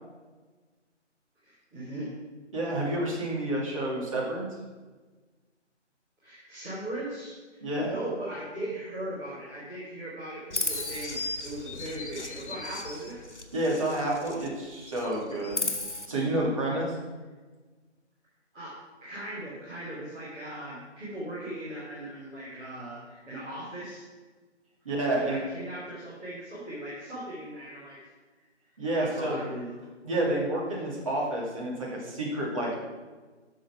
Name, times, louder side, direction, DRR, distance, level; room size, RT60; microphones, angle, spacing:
voice 1, 1.4-2.1 6.2-13.2 18.5-18.7 19.0-24.0 25.1-28.0 28.9-29.7, right 1 dB, 5° right, -15 dB, 1.2 m, -38 dB
voice 2, 2.5-4.5 7.6-7.9 13.5-15.7 16.1-16.9 24.8-25.4 28.8-29.4 30.0-32.8, right 1 dB, 30° right, -5 dB, 2.6 m, -29 dB
Chirp tweet, 10.5-14.5 14.8-16.1, left 2 dB, 70° left, 1.7 m, -35 dB
11.5 x 6.4 x 5.8 m, 1.3 s
figure-of-eight pair, 155°, 36 cm